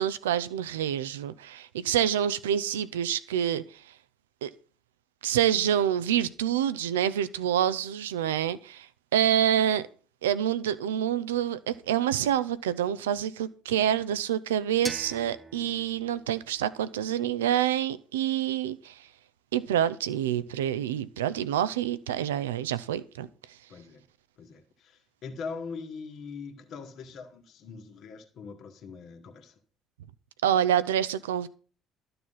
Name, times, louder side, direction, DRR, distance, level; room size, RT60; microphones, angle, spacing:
voice 1, 0.0-3.8 4.4-4.5 5.2-8.9 9.1-9.9 10.2-19.1 19.5-23.3 30.4-31.5, right 10 dB, 85° right, 0.6 m, -27 dB
sound 1, 14.8-17.7, right 2 dB, 15° right, 0.9 m, -44 dB
voice 2, 23.7-24.0 24.4-29.5, left 5 dB, 60° left, 1.8 m, -42 dB
12.5 x 6.8 x 5.7 m
hypercardioid pair, 60°, 0 cm